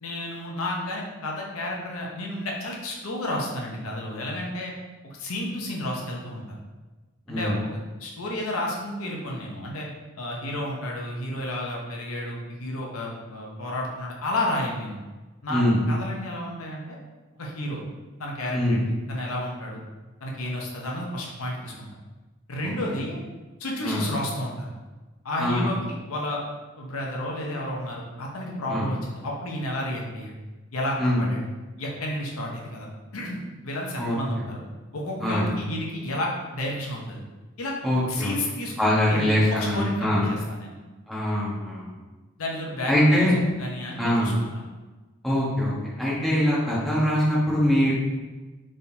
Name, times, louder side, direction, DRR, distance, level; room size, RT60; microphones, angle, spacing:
voice 1, 0.0-4.7 5.0-6.6 7.3-9.9 10.2-15.0 15.4-17.0 17.3-17.8 18.2-18.8 19.1-19.8 20.2-21.9 22.5-23.2 23.6-24.7 25.2-26.4 26.8-30.3 30.7-31.5 31.8-32.9 33.1-34.6 34.9-37.2 37.6-37.7 38.1-40.7 42.4-44.6, left 1 dB, 85° left, -1 dB, 0.8 m, -31 dB
voice 2, 34.0-34.4 35.2-35.5 37.8-38.3 38.8-40.2 41.1-41.9 42.9-43.4 44.0-44.3 45.2-47.9, equal, ahead, -9 dB, 1.2 m, -23 dB
4.3 x 3.6 x 2.7 m, 1.2 s
head